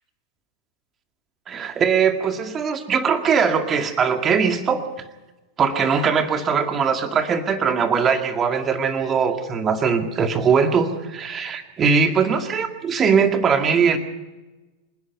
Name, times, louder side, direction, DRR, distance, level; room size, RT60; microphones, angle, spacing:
voice 1, 1.5-4.8 5.6-14.0, right 6 dB, 25° right, 6 dB, 2.1 m, -20 dB
26.5 x 10.5 x 9.3 m, 1.1 s
figure-of-eight pair, 90°, 0 cm